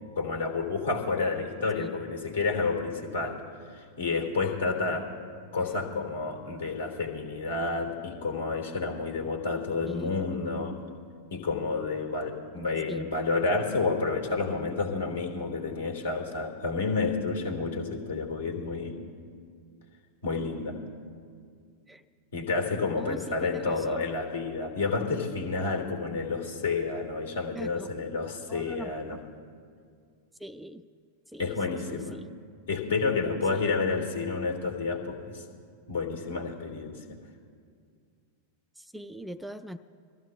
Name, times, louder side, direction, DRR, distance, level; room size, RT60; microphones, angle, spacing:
voice 1, 0.0-3.4 3.7-5.1 5.5-10.8 11.3-19.0 20.2-20.8 22.3-29.2 31.4-32.2 32.7-35.4 35.9-37.0, left 4 dB, 60° left, 3 dB, 1.7 m, -30 dB
voice 2, 9.9-10.2 12.9-13.1 21.9-22.0 23.0-24.0 27.6-27.9 28.5-29.2 30.4-30.8 31.3-32.3 33.5-33.7 38.8-39.8, right 1 dB, 5° right, 10 dB, 0.4 m, -41 dB
24.0 x 14.0 x 2.2 m, 2.1 s
figure-of-eight pair, 90°, 0 cm